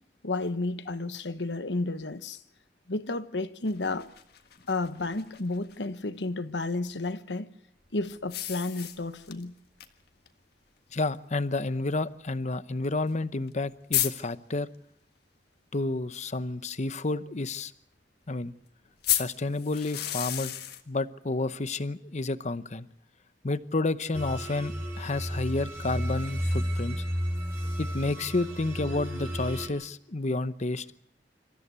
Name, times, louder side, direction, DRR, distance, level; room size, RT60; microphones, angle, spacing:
voice 1, 0.2-2.4 2.9-4.1 4.7-7.5 7.9-9.5, left 2 dB, 85° left, 1.3 m, -32 dB
sound 1, 3.7-5.8 8.3-9.4 9.8-9.9 10.3-10.4 11.3-11.4 13.1-13.2 13.5-13.6 13.9-14.1 19.0-20.8, left 12 dB, 65° left, 1.6 m, -31 dB
voice 2, 10.9-14.7 15.7-17.7 18.3-18.5 19.1-20.5 20.9-22.9 23.4-27.0 27.8-31.0, left 2 dB, 45° left, 0.9 m, -30 dB
sound 2, 24.1-29.7, equal, 15° right, 5.4 m, -32 dB
27.0 x 14.5 x 8.3 m
head